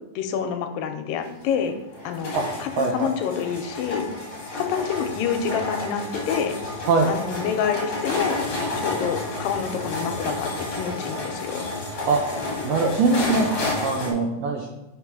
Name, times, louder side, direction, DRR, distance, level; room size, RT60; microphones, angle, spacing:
voice 1, 0.2-1.7 2.0-4.1 4.6-6.5 7.1-8.4 8.8-11.6, left 7 dB, 85° left, 6 dB, 2.3 m, -27 dB
sound 1, 1.2-14.1, left 2 dB, 45° left, 1.9 m, -30 dB
voice 2, 2.8-3.1 6.9-7.1 12.1-12.2 12.6-13.5 13.8-14.7, right 4 dB, 90° right, 1 dB, 1.5 m, -22 dB
5.2 x 4.4 x 4.7 m, 1.1 s
omnidirectional pair, 3.9 m